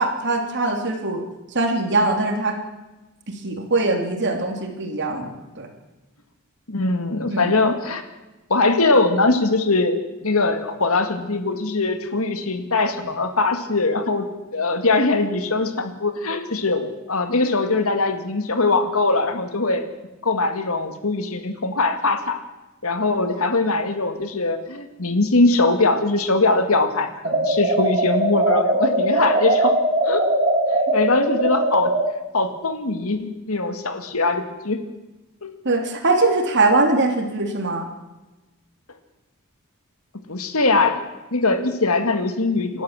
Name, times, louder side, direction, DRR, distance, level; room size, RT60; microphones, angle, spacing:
voice 1, 0.0-2.6 3.3-5.7 7.3-7.5 35.6-37.9, right 2 dB, 55° right, 4 dB, 3.1 m, -22 dB
voice 2, 6.7-8.0 8.5-14.3 14.5-19.9 20.2-22.4 22.8-29.7 30.1-30.3 30.9-31.9 32.3-34.8 35.4-35.5 40.3-41.0 41.3-42.8, left 3 dB, 75° left, 8 dB, 2.1 m, -21 dB
sound 1, 27.2-32.1, right 1 dB, 30° right, 5.6 m, -20 dB
28.5 x 12.5 x 7.5 m, 1.1 s
head